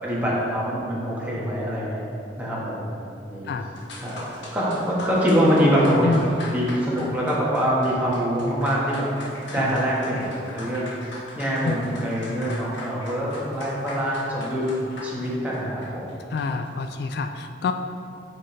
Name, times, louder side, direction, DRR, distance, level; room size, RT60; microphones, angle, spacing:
voice 1, 0.0-2.1 2.4-2.9 3.2-3.5 4.0-4.2 4.5-6.1 6.5-10.9 11.4-16.1, equal, 10° right, -7 dB, 1.3 m, -24 dB
sound 1, 3.8-16.7, left 1 dB, 80° left, 1.2 m, -39 dB
voice 2, 16.3-17.7, left 4 dB, 60° left, 7 dB, 0.3 m, -27 dB
8.7 x 4.2 x 3.2 m, 2.5 s
head